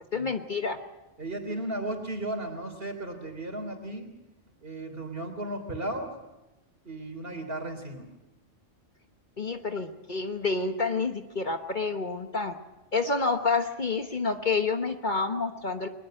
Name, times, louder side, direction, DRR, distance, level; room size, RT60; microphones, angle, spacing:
voice 1, 0.1-0.8 9.4-12.6 12.9-15.9, left 4 dB, 40° left, 6 dB, 1.3 m, -28 dB
voice 2, 1.2-4.1 4.6-6.2 6.8-8.1, right 1 dB, 50° right, 5 dB, 3.8 m, -35 dB
22.0 x 21.0 x 7.7 m, 1.0 s
omnidirectional pair, 1.2 m